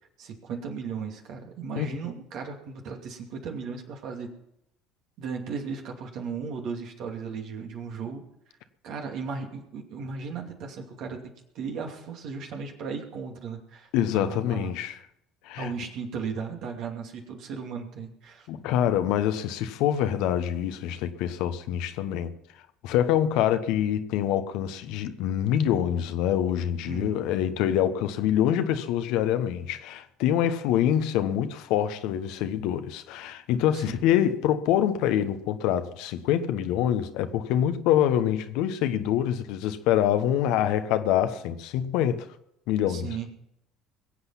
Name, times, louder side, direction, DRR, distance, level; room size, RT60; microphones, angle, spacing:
voice 1, 0.2-4.3 5.2-8.2 8.8-14.7 15.6-18.5 26.9-27.2 33.7-34.0 42.9-43.3, right 5 dB, 60° right, 2.5 m, -36 dB
voice 2, 13.9-14.9 15.4-15.7 18.5-22.3 22.8-42.3 42.7-43.1, left 10 dB, 70° left, 1.1 m, -25 dB
21.5 x 8.0 x 5.9 m
hypercardioid pair, 70°, 0 cm